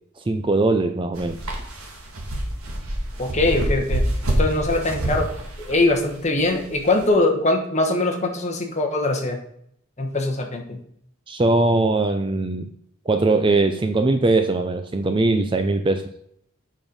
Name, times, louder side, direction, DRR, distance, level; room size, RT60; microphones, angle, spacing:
voice 1, 0.3-1.4 11.3-12.6 13.1-16.1, right 2 dB, 25° right, 8 dB, 0.4 m, -20 dB
sound 1, 1.1-7.1, right 1 dB, 85° right, 1.8 m, -27 dB
voice 2, 3.2-4.0 4.4-5.3 5.6-9.4 10.0-10.8, left 2 dB, 30° left, 4 dB, 1.2 m, -22 dB
7.1 x 5.6 x 5.2 m, 0.68 s
head